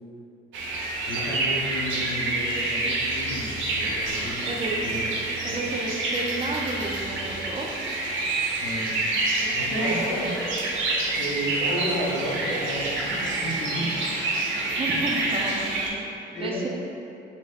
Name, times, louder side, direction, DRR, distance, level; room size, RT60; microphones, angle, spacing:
sound 1, 0.5-15.9, right 2 dB, 75° right, 0.5 m, -27 dB
voice 1, 1.1-4.4 4.8-5.0 5.5-5.7 8.6-9.2 9.5-10.4 11.1-14.2 16.3-16.7, equal, 60° left, -3 dB, 0.6 m, -33 dB
voice 2, 4.4-4.8 5.4-7.7 9.4-10.3 14.8-16.7, right 2 dB, 30° right, -2 dB, 0.4 m, -32 dB
2.7 x 2.2 x 3.5 m, 2.6 s
cardioid pair, 90°, 20 cm